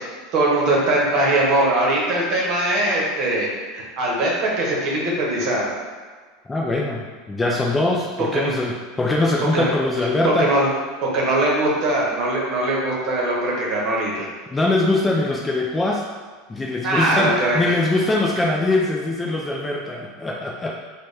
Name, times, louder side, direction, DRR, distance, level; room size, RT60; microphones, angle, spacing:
voice 1, 0.3-3.5 3.7-5.7 8.3-8.5 9.5-9.7 10.0-10.7 11.0-14.3 16.8-17.7, right 1 dB, 40° right, -4 dB, 1.0 m, -21 dB
voice 2, 6.5-10.5 14.5-16.0 16.5-20.7, left 2 dB, 10° left, -2 dB, 0.3 m, -22 dB
4.0 x 2.2 x 3.2 m, 1.5 s
supercardioid pair, 150°, 0 cm